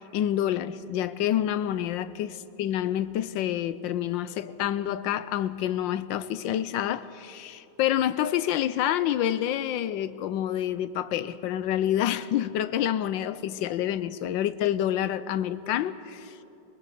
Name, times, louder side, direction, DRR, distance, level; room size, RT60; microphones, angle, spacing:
voice 1, 0.1-16.4, left 11 dB, 80° left, 1.4 m, -28 dB
23.5 x 20.0 x 6.8 m
omnidirectional pair, 2.1 m